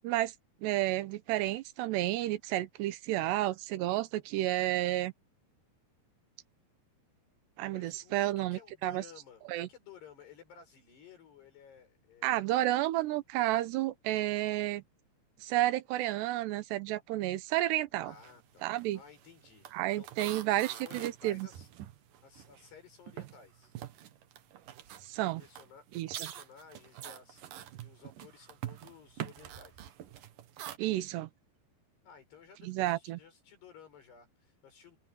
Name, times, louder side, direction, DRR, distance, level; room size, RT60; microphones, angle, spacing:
voice 1, 0.6-5.1 7.6-9.0 9.5-9.7 12.2-14.8 15.4-18.1 18.6-19.0 19.7-21.5 25.0-25.4 26.0-26.2 30.8-31.3 32.6-33.2, right 15 dB, 85° right, 3.1 m, -31 dB
voice 2, 7.7-12.5 18.0-19.7 20.0-21.7 22.2-23.8 25.4-30.0 32.0-35.0, left 7 dB, 75° left, 8.9 m, -55 dB
sound 1, 18.1-18.4 18.7-22.8 23.1-30.8, right 12 dB, 65° right, 2.6 m, -45 dB
omnidirectional pair, 4.8 m